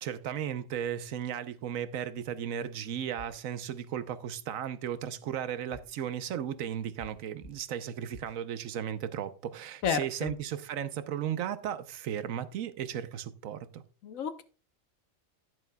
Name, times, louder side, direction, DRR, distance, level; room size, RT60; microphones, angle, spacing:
voice 1, 0.0-13.8, right 9 dB, 90° right, 1.2 m, -35 dB
sound 1, 3.2-3.3 3.7-3.8 5.7-6.1 7.0-7.1 7.4-7.5 8.1-8.3 9.8-9.9 10.2-10.6, left 1 dB, 25° left, 4.9 m, -49 dB
voice 2, 9.8-10.3 14.0-14.4, left 7 dB, 85° left, 1.3 m, -31 dB
11.0 x 10.5 x 2.3 m
omnidirectional pair, 1.4 m